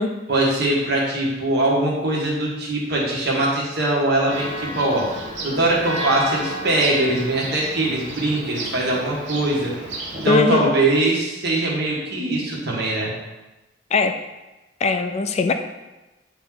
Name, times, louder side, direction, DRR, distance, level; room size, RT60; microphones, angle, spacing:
voice 1, 0.3-5.1 5.4-9.7 10.2-13.1, right 2 dB, 60° right, -4 dB, 1.6 m, -21 dB
Church bell, 4.3-10.3, right 1 dB, 85° right, 1.2 m, -32 dB
voice 2, 10.3-10.7 13.9-14.1 14.8-15.5, left 4 dB, 35° left, 7 dB, 0.3 m, -19 dB
8.6 x 3.0 x 3.8 m, 1.1 s
head